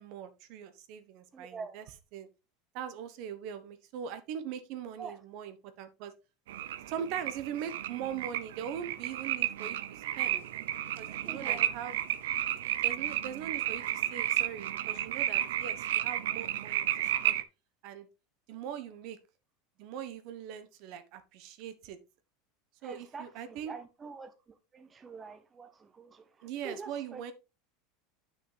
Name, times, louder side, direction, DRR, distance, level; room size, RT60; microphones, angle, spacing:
voice 1, 0.0-1.8 2.1-2.3 2.7-6.1 6.9-10.4 10.9-12.0 12.8-17.4 17.8-18.1 18.5-19.2 19.8-22.0 22.8-23.7 26.4-27.3, right 8 dB, 60° right, 1.2 m, -41 dB
voice 2, 1.3-1.8 5.0-5.2 11.1-11.7 22.8-24.3 24.7-27.3, right 5 dB, 20° right, 0.8 m, -45 dB
sound 1, 6.5-17.4, right 12 dB, 85° right, 0.6 m, -32 dB
8.2 x 6.2 x 3.4 m
supercardioid pair, 125°, 0 cm